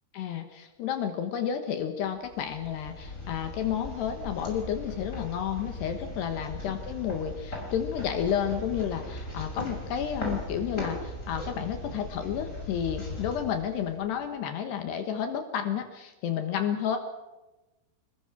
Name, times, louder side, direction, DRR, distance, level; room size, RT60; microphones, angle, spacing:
voice 1, 0.1-17.0, left 8 dB, 70° left, 6 dB, 3.3 m, -31 dB
sound 1, 2.2-14.3, left 2 dB, 15° left, 5.7 m, -38 dB
29.5 x 20.0 x 6.2 m, 1.1 s
omnidirectional pair, 5.3 m